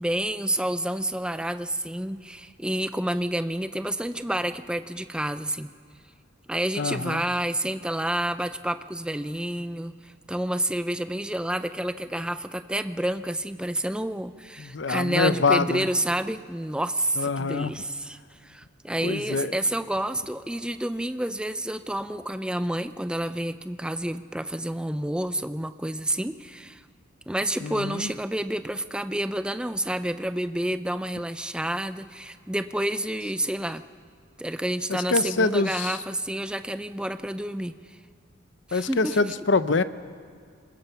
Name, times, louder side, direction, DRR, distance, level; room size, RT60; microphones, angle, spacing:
voice 1, 0.0-5.7 6.5-9.9 10.3-26.8 27.3-33.8 34.4-37.7 38.7-39.2, right 1 dB, 5° right, 11 dB, 0.5 m, -29 dB
voice 2, 6.8-7.2 14.6-15.9 17.2-17.7 19.0-19.6 27.6-28.1 34.9-36.0 38.7-39.8, left 3 dB, 65° left, 13 dB, 0.7 m, -25 dB
26.5 x 20.5 x 5.7 m, 2.1 s
head